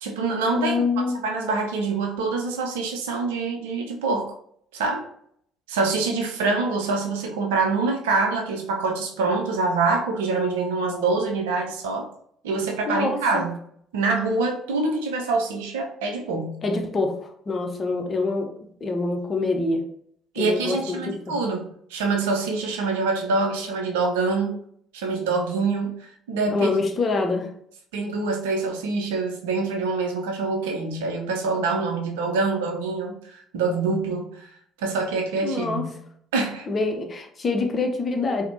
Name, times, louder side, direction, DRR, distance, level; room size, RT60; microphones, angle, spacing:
voice 1, 0.0-4.3 4.7-5.1 5.7-12.1 12.4-13.5 13.9-16.6 20.3-24.6 24.9-26.7 27.9-34.3 34.8-35.9 36.3-36.7, right 3 dB, 70° right, 2 dB, 0.5 m, -25 dB
voice 2, 0.5-1.2 12.9-13.4 16.6-18.5 18.8-19.8 20.4-21.1 26.5-27.5 35.4-35.8 36.7-38.4, left 3 dB, 35° left, 3 dB, 0.6 m, -25 dB
4.1 x 2.1 x 2.7 m, 0.67 s
figure-of-eight pair, 50°, 0 cm